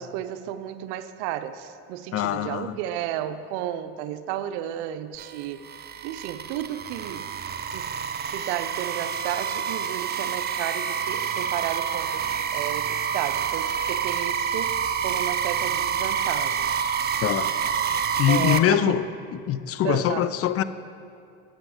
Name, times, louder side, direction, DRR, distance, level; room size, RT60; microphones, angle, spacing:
voice 1, 0.0-5.6 6.0-7.4 7.7-7.9 8.2-12.2 12.5-16.7 18.3-19.0 19.8-20.3, right 11 dB, 75° right, 0.6 m, -33 dB
voice 2, 2.1-2.8 17.2-17.5 18.2-19.0 19.3-20.6, left 11 dB, 45° left, 0.4 m, -23 dB
sound 1, 5.2-18.6, right 8 dB, 30° right, 0.6 m, -28 dB
9.1 x 8.6 x 4.9 m
supercardioid pair, 85°, 35 cm